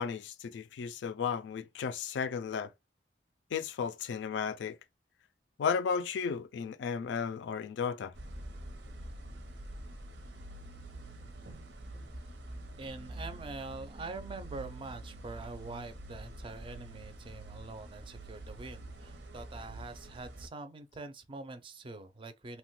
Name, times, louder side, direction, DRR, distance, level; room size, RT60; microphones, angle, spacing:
voice 1, 0.0-2.7 3.5-4.8 5.6-8.1, left 6 dB, 90° left, 0.3 m, -34 dB
sound 1, 8.1-20.5, right 1 dB, 85° right, 0.7 m, -46 dB
voice 2, 12.8-22.6, right 3 dB, 30° right, 0.4 m, -44 dB
2.9 x 2.1 x 3.0 m
head